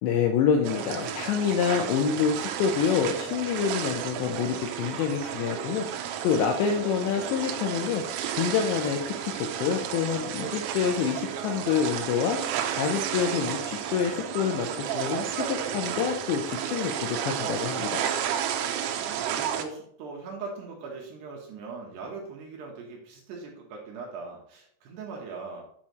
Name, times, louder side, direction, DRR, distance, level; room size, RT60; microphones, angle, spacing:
voice 1, 0.0-5.9 6.2-8.0 8.4-12.4 12.8-18.1, left 7 dB, 85° left, 3 dB, 2.6 m, -27 dB
sound 1, 0.6-19.7, right 9 dB, 85° right, 3.2 m, -32 dB
voice 2, 18.8-25.6, right 4 dB, 70° right, -1 dB, 2.8 m, -40 dB
8.2 x 7.3 x 3.1 m, 0.65 s
omnidirectional pair, 5.9 m